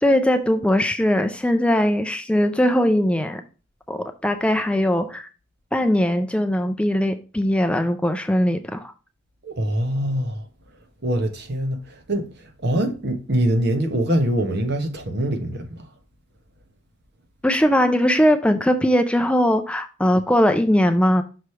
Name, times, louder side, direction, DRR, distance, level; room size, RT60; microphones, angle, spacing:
voice 1, 0.0-3.4 3.9-5.3 5.7-8.9 17.4-21.2, equal, 5° left, 0.4 m, -20 dB
voice 2, 9.4-10.4 11.0-11.8 12.1-12.3 12.6-15.7, right 1 dB, 55° right, 1.1 m, -23 dB
6.1 x 3.2 x 5.6 m
head